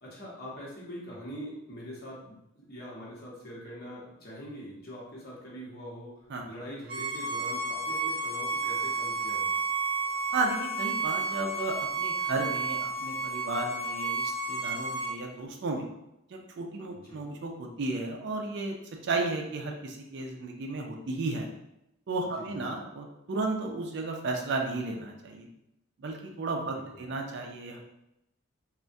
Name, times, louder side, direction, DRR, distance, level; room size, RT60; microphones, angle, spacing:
voice 1, 0.0-9.6 16.9-17.3 22.2-22.8 26.6-27.1, equal, 45° left, -5 dB, 0.9 m, -43 dB
Bowed string instrument, 6.9-15.1, right 3 dB, 25° right, 0.7 m, -31 dB
voice 2, 10.3-15.9 16.3-18.8 19.0-21.5 22.1-25.5 26.0-27.8, right 3 dB, 55° right, 2 dB, 0.4 m, -33 dB
3.3 x 2.1 x 2.6 m, 0.85 s
head